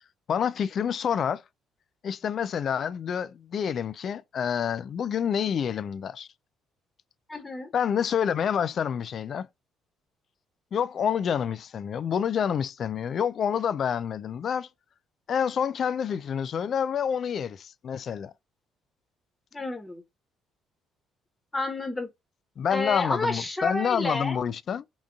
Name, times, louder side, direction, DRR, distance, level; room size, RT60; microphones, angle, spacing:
voice 1, 0.3-1.4 2.0-6.3 7.7-9.5 10.7-14.7 15.3-18.3 22.6-24.9, left 8 dB, 55° left, 0.3 m, -28 dB
voice 2, 7.3-7.7 19.5-20.0 21.5-22.1 22.7-24.4, left 2 dB, 20° left, 1.1 m, -30 dB
3.8 x 2.4 x 2.3 m
hypercardioid pair, 60°, 0 cm